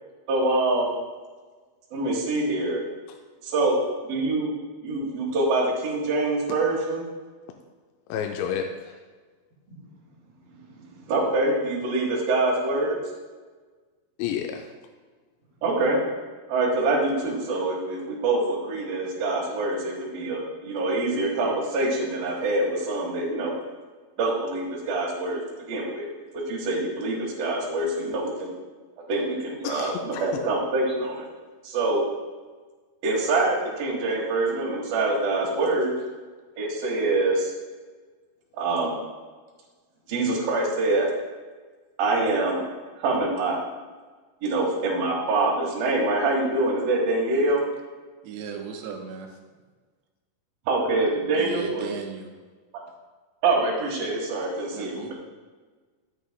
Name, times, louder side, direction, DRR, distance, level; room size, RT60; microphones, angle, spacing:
voice 1, 0.3-0.9 1.9-2.8 3.4-3.8 4.1-4.5 4.8-7.1 10.7-13.0 15.6-16.0 16.5-23.5 24.2-25.4 25.7-26.1 26.5-28.5 29.1-31.3 31.6-32.0 33.0-35.9 36.6-37.5 38.6-39.0 40.1-41.1 42.0-42.6 43.0-43.6 44.4-47.6 50.7-51.9 53.4-55.1, right 2 dB, 60° right, -4 dB, 3.0 m, -25 dB
voice 2, 8.1-9.0 14.2-14.7 29.6-30.4, left 8 dB, 85° left, 3 dB, 2.8 m, -31 dB
voice 3, 48.2-49.3 51.4-52.3 54.7-55.1, right 6 dB, 90° right, 2 dB, 3.2 m, -36 dB
12.5 x 8.4 x 2.2 m, 1.4 s
omnidirectional pair, 5.1 m